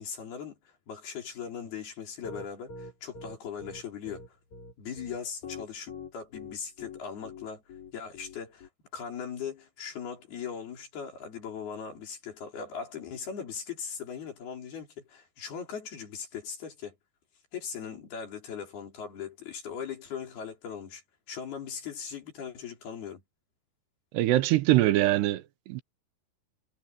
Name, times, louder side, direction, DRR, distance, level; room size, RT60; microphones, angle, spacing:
voice 1, 0.0-4.4 4.8-7.6 7.9-17.0 17.5-23.2, left 7 dB, 70° left, 6.5 m, -39 dB
Piano, 2.2-8.7, left 4 dB, 45° left, 6.8 m, -43 dB
voice 2, 24.1-25.8, right 16 dB, 85° right, 3.1 m, -23 dB
omnidirectional pair, 4.7 m